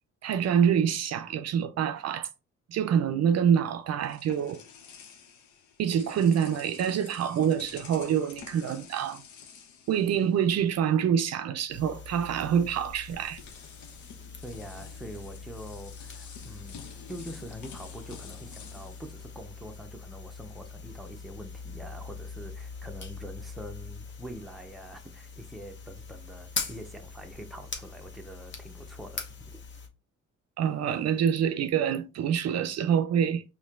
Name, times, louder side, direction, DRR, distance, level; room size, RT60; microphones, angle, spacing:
voice 1, 0.2-2.3 2.7-4.6 5.8-9.2 9.9-13.4 30.6-33.4, right 8 dB, 60° right, 0.4 m, -26 dB
sound 1, 3.5-10.8 11.1-11.3 12.4-12.5 12.9-20.1, left 6 dB, 75° left, 0.8 m, -49 dB
sound 2, 11.7-29.9, left 4 dB, 40° left, 0.9 m, -42 dB
voice 2, 14.4-16.8 17.1-29.3, equal, ahead, 0.6 m, -44 dB
4.2 x 2.9 x 2.4 m
cardioid pair, 90°, 30 cm